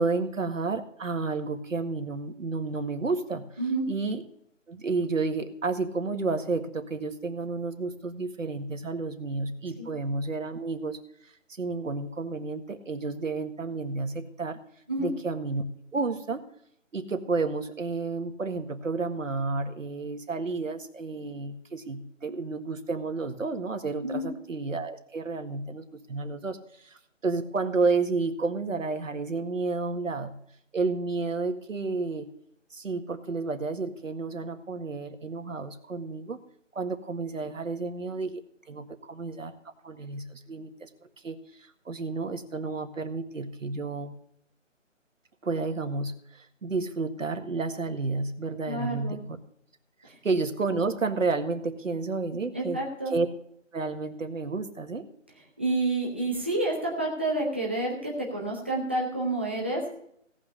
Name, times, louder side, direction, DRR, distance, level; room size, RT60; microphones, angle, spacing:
voice 1, 0.0-3.5 3.9-4.2 4.7-11.0 11.6-14.6 15.0-15.6 15.9-16.4 16.9-30.3 30.7-32.3 32.7-36.4 36.8-38.4 38.7-39.5 39.8-40.9 41.2-44.2 45.4-49.3 50.2-52.8 53.1-53.3 53.7-55.1, right 3 dB, 80° right, 7 dB, 1.9 m, -31 dB
voice 2, 3.6-3.9 9.8-9.9 14.9-15.1 24.0-24.3 48.6-49.2 50.1-50.2 52.5-53.1 55.6-59.9, right 2 dB, 10° right, -2 dB, 0.8 m, -29 dB
17.0 x 5.8 x 6.7 m, 0.71 s
figure-of-eight pair, 170°, 38 cm